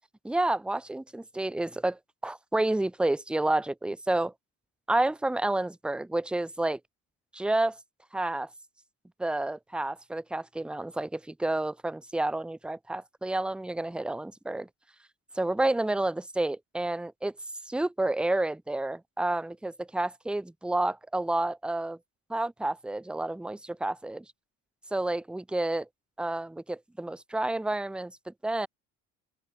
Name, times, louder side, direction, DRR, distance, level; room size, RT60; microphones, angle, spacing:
voice 1, 0.2-4.3 4.9-6.8 7.3-7.8 8.1-8.5 9.2-14.7 15.3-17.3 17.7-22.0 22.3-24.2 24.9-25.9 26.2-28.7, right 2 dB, 5° right, 1.0 m, -30 dB
open air
cardioid pair, 170°, 32 cm